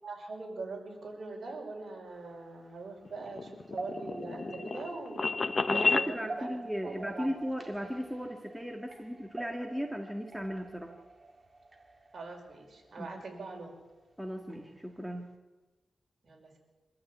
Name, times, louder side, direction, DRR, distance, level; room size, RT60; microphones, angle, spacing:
voice 1, 0.0-5.4 5.7-6.6 6.8-7.3 12.1-13.7 16.2-16.6, right 3 dB, 50° right, 1 dB, 5.6 m, -42 dB
sound 1, 2.0-15.3, right 2 dB, 25° right, 2.3 m, -49 dB
sound 2, 3.0-6.1, left 3 dB, 40° left, 1.1 m, -31 dB
voice 2, 5.5-10.9 13.0-13.1 14.2-15.3, equal, ahead, 1 dB, 1.8 m, -36 dB
25.0 x 13.5 x 8.6 m, 1.2 s
wide cardioid pair, 135°, 0 cm